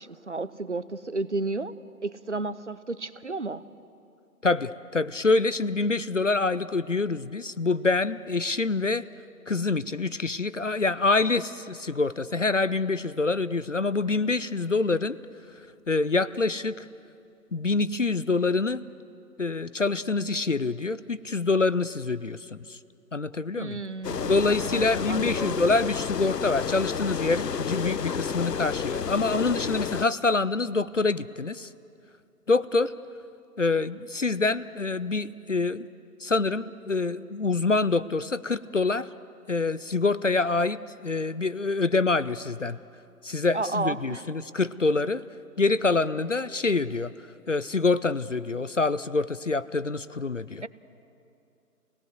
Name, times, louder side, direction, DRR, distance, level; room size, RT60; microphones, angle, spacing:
voice 1, 0.0-1.7 2.0-3.6 23.6-24.3 24.6-25.6 43.5-44.2 50.6-50.7, right 3 dB, 50° right, 15 dB, 0.6 m, -32 dB
voice 2, 4.4-9.1 9.5-15.2 15.9-16.9 17.5-18.8 19.4-22.8 23.1-23.8 24.2-31.7 32.5-32.9 33.6-35.9 36.2-39.1 39.5-42.8 43.2-45.2 45.6-47.1 47.5-50.6, left 3 dB, 50° left, 16 dB, 0.5 m, -26 dB
sound 1, 24.0-30.0, left 6 dB, 85° left, 0.8 m, -30 dB
26.5 x 18.5 x 7.8 m, 2.6 s
figure-of-eight pair, 170°, 48 cm